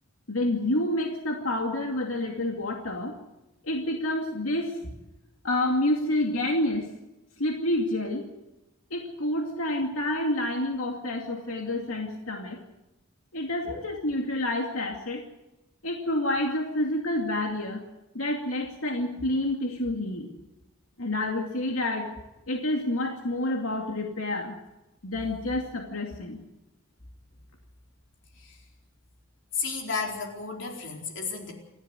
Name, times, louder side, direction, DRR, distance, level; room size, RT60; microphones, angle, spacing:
voice 1, 0.3-3.2 3.6-5.0 5.4-6.9 7.4-8.2 8.9-12.6 13.3-15.2 15.8-17.8 18.1-20.3 21.0-22.1 22.5-24.6 25.0-26.4, left 1 dB, 90° left, 1 dB, 2.5 m, -28 dB
voice 2, 29.5-31.5, left 5 dB, 60° left, 1 dB, 4.2 m, -33 dB
28.5 x 12.5 x 8.0 m, 0.95 s
head